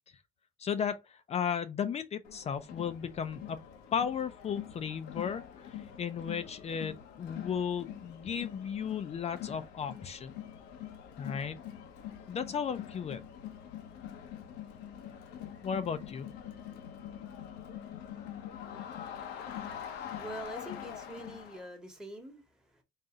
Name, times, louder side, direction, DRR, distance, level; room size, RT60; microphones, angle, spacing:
voice 1, 0.6-1.0 1.3-3.6 3.9-5.4 6.0-10.3 11.2-11.6 12.3-13.2 15.6-16.3, left 7 dB, 40° left, 0.5 m, -34 dB
Crowd, 2.2-21.7, left 9 dB, 85° left, 0.9 m, -44 dB
voice 2, 20.2-22.8, right 1 dB, 5° right, 1.2 m, -45 dB
4.1 x 2.7 x 3.6 m
cardioid pair, 110°, 17 cm